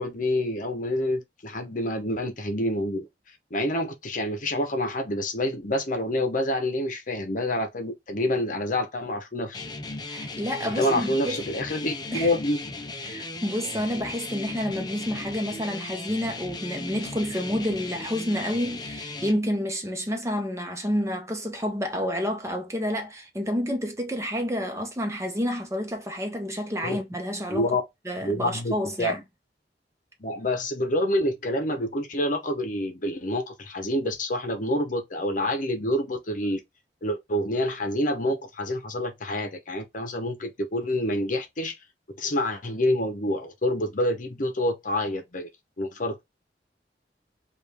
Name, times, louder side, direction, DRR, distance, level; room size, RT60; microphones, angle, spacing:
voice 1, 0.0-3.0 3.5-9.6 10.6-12.6 26.8-27.0 27.5-27.8 28.2-29.1 30.2-36.6 37.0-41.8 42.2-45.5 45.8-46.2, left 1 dB, 50° left, 0.9 m, -27 dB
sound 1, 9.5-19.3, left 3 dB, 25° left, 0.6 m, -37 dB
voice 2, 10.1-11.4 12.1-12.3 13.0-27.7 28.1-29.2, equal, 15° right, 1.1 m, -29 dB
5.1 x 2.6 x 3.4 m
head